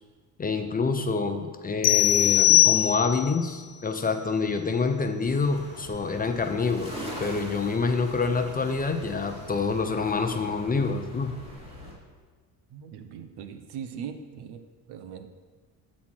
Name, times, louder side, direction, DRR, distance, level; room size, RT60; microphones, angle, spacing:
voice 1, 0.4-11.3, left 4 dB, 20° left, 6 dB, 0.5 m, -27 dB
sound 1, 1.8-3.4, left 15 dB, 70° left, 0.7 m, -20 dB
sound 2, 5.2-11.9, equal, 15° right, 2.5 m, -42 dB
voice 2, 12.7-14.6 14.9-15.3, right 7 dB, 75° right, 9 dB, 0.8 m, -40 dB
8.4 x 4.3 x 6.1 m, 1.4 s
cardioid pair, 105°, 40 cm